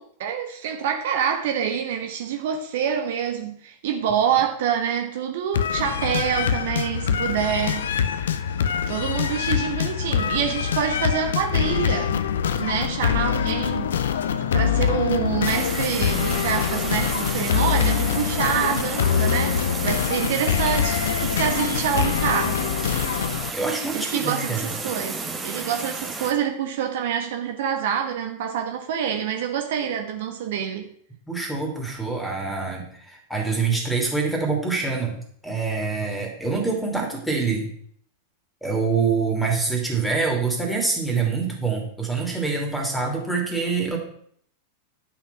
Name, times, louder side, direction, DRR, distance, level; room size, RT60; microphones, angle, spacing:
voice 1, 0.0-7.9 8.9-12.2 12.5-13.9 14.5-22.8 23.9-30.9, right 8 dB, 55° right, 5 dB, 1.2 m, -26 dB
sound 1, 5.5-23.5, left 8 dB, 65° left, 0.7 m, -24 dB
sound 2, 15.4-26.3, right 3 dB, 15° right, 1.6 m, -32 dB
voice 2, 23.5-24.7 31.3-35.1 35.4-37.7 38.6-44.0, right 4 dB, 5° left, 2 dB, 3.1 m, -25 dB
11.0 x 6.1 x 5.9 m, 0.63 s
figure-of-eight pair, 90°, 0 cm